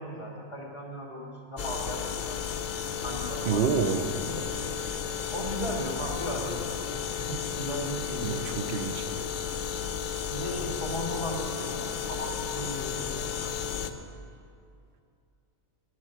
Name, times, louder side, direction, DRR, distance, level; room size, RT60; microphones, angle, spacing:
voice 1, 0.0-2.4 3.0-4.5 5.3-8.4 10.3-13.8, equal, 20° left, -3 dB, 1.8 m, -36 dB
sound 1, 1.6-13.9, left 7 dB, 55° left, 0.6 m, -33 dB
voice 2, 3.5-4.1 8.2-9.0, right 6 dB, 55° right, 8 dB, 0.7 m, -28 dB
17.5 x 6.2 x 5.7 m, 2.4 s
omnidirectional pair, 1.4 m